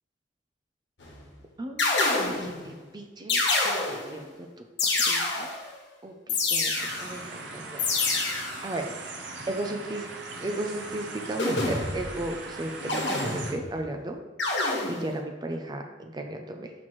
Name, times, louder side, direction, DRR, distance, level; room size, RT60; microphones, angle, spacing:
sound 1, 1.0-1.3 1.8-2.6 3.3-4.2 4.8-5.7 6.3-7.2 7.8-8.7 11.4-12.1 12.9-13.7 14.4-15.2, left 3 dB, 70° left, 1.2 m, -27 dB
voice 1, 1.6-1.9 2.4-5.5 6.0-6.7 7.0-7.8 8.6-8.9 9.5-10.1 10.4-14.2 14.9-16.7, right 1 dB, 25° right, 4 dB, 0.5 m, -35 dB
sound 2, 6.7-13.5, right 3 dB, 75° right, 0.9 m, -40 dB
6.0 x 5.9 x 3.1 m, 1.2 s
head